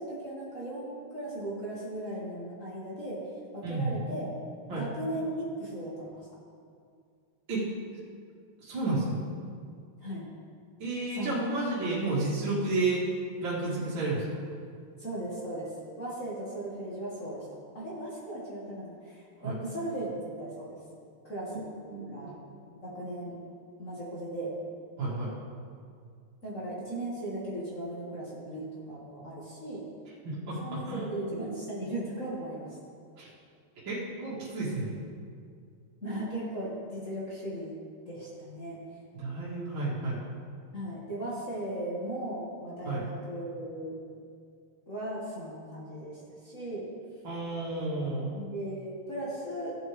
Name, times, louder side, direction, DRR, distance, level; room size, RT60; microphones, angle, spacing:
voice 1, 0.0-3.2 3.5-4.3 4.7-6.3 10.0-10.3 11.1-11.4 15.0-17.5 17.7-20.8 21.2-21.7 22.1-22.3 22.8-23.3 23.8-24.5 26.4-29.8 30.6-32.8 36.0-37.8 38.1-38.8 40.7-44.0 44.9-46.9 48.3-49.8, right 1 dB, 35° left, -7 dB, 2.3 m, -37 dB
voice 2, 3.6-3.9 4.7-4.9 7.5-7.6 8.6-9.2 10.8-13.0 13.4-14.3 19.4-19.6 21.9-22.3 25.0-25.3 30.2-30.6 30.8-31.1 33.2-33.3 33.9-34.9 39.2-40.2 42.8-43.1 47.2-48.3, right 2 dB, 60° right, -8 dB, 2.6 m, -31 dB
15.5 x 8.0 x 3.4 m, 2.2 s
omnidirectional pair, 2.4 m